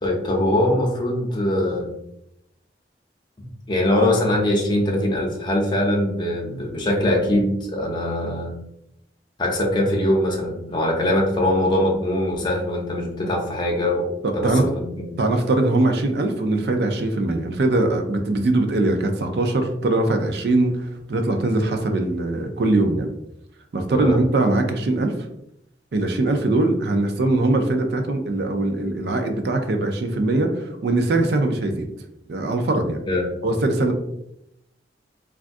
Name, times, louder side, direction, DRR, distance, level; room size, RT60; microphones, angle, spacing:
voice 1, 0.0-2.0 3.4-8.5 9.4-15.1 23.9-24.2 33.1-33.3, left 1 dB, 25° left, -1 dB, 0.6 m, -22 dB
voice 2, 14.2-14.7 15.2-23.1 23.7-25.2 25.9-31.9 32.3-33.0 33.4-33.9, right 2 dB, 65° right, 5 dB, 0.4 m, -21 dB
3.5 x 2.3 x 2.5 m, 0.81 s
head